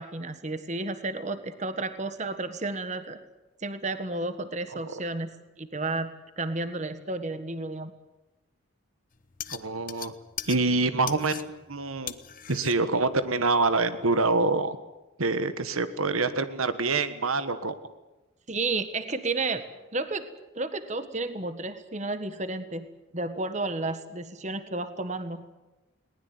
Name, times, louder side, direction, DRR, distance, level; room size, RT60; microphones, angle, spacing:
voice 1, 0.0-3.2 3.6-5.3 5.6-7.9 18.5-19.6 19.9-20.3 20.5-22.9 23.1-25.4, right 2 dB, 35° right, 10 dB, 1.5 m, -32 dB
sound 1, 9.1-14.5, left 10 dB, 40° left, 1.0 m, -42 dB
voice 2, 9.5-10.1 10.5-12.1 12.5-14.8 15.2-17.7, right 3 dB, 85° right, 11 dB, 1.5 m, -26 dB
21.0 x 19.5 x 9.5 m, 1.1 s
head